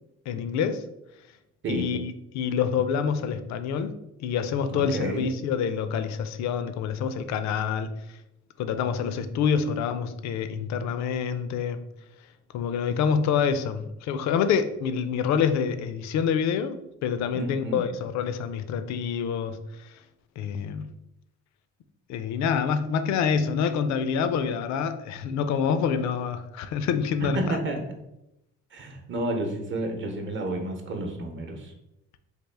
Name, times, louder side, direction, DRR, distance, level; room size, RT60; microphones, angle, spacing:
voice 1, 0.3-0.8 1.7-3.9 4.2-7.9 8.6-11.9 12.5-19.6 20.4-20.9 22.1-27.6, left 7 dB, 70° left, 0.4 m, -27 dB
voice 2, 4.7-5.3 17.3-17.8 27.2-27.8 28.7-31.7, right 1 dB, 40° right, 0.8 m, -31 dB
3.4 x 2.4 x 3.3 m
supercardioid pair, 75°, 29 cm